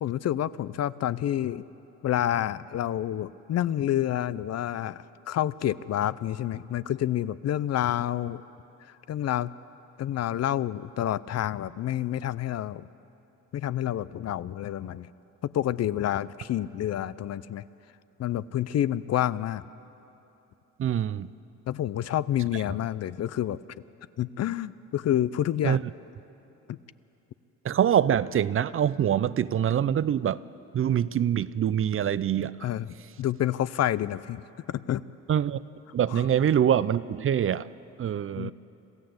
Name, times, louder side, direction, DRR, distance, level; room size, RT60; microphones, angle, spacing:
voice 1, 0.0-1.6 2.0-8.4 9.1-9.5 10.0-12.9 13.5-15.1 15.4-17.6 18.2-19.6 21.7-23.6 24.2-25.8 26.7-26.8 32.6-34.4 34.7-35.0 36.1-36.3 38.4-38.5, left 11 dB, 55° left, 17 dB, 0.6 m, -28 dB
voice 2, 20.8-21.3 25.6-25.8 27.6-30.4 30.7-32.6 35.3-35.6 35.9-37.7 38.0-38.5, right 9 dB, 45° right, 17 dB, 0.5 m, -24 dB
27.0 x 14.5 x 7.9 m, 2.9 s
cardioid pair, 90°, 30 cm